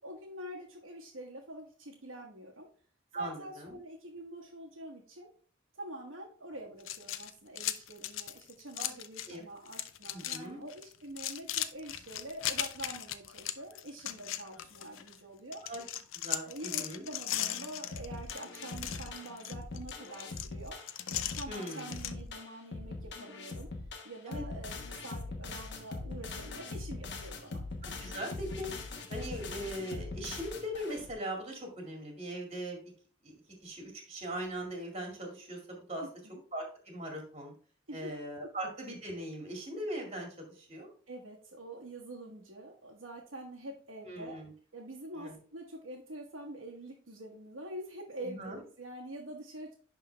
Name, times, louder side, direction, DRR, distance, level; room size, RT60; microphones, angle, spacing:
voice 1, 0.0-2.7 3.1-5.3 5.7-15.6 16.4-20.8 21.3-23.7 24.0-27.6 36.0-36.4 37.9-38.1 41.1-44.4 44.7-49.7, right 1 dB, 85° right, -3 dB, 1.4 m, -45 dB
voice 2, 3.1-3.8 8.8-8.9 9.3-9.4 10.1-10.6 15.7-15.8 16.1-17.1 21.5-21.9 24.3-24.4 27.8-28.7 29.1-32.8 33.2-33.3 33.6-36.0 36.5-37.5 37.9-40.9 44.0-44.5 45.1-45.4 48.2-48.6, right 1 dB, 30° right, 1 dB, 2.1 m, -40 dB
sound 1, 6.8-9.4 9.6-10.4 10.7-15.2 15.5-22.1, left 12 dB, 85° left, 0.5 m, -38 dB
sound 2, 17.9-31.1, left 3 dB, 60° left, 1.1 m, -42 dB
10.5 x 3.7 x 3.3 m, 0.43 s
head